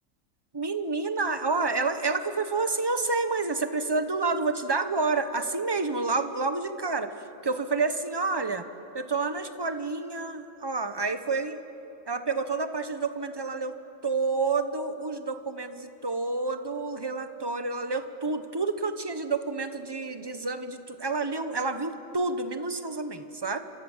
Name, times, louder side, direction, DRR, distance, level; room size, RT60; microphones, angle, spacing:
voice 1, 0.5-7.1 7.4-8.7 8.9-11.6 12.1-23.6, right 3 dB, 20° right, 9 dB, 1.2 m, -29 dB
29.5 x 26.5 x 7.5 m, 3.0 s
omnidirectional pair, 1.4 m